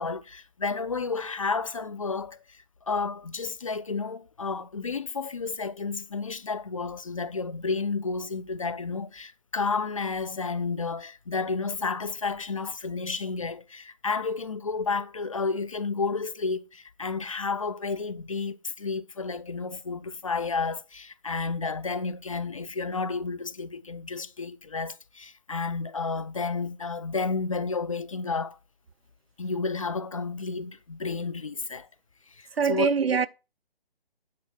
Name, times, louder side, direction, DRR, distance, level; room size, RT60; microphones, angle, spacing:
voice 1, 0.0-28.6 29.4-31.9 32.3-32.9, left 4 dB, 35° left, 0.4 m, -31 dB
voice 2, 32.6-33.3, right 6 dB, 75° right, 0.7 m, -23 dB
9.4 x 4.6 x 6.4 m
figure-of-eight pair, 145°, 30 cm